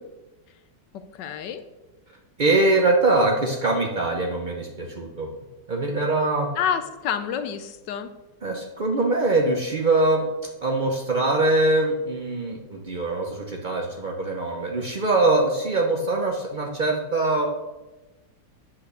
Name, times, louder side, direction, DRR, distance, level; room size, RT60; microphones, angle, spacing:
voice 1, 0.9-1.6 6.5-8.1, left 8 dB, 70° left, 10 dB, 1.2 m, -28 dB
voice 2, 2.4-5.3 5.7-6.5 8.4-10.3 10.6-17.5, right 2 dB, 60° right, 1 dB, 0.4 m, -23 dB
8.4 x 5.8 x 6.6 m, 1.1 s
omnidirectional pair, 2.0 m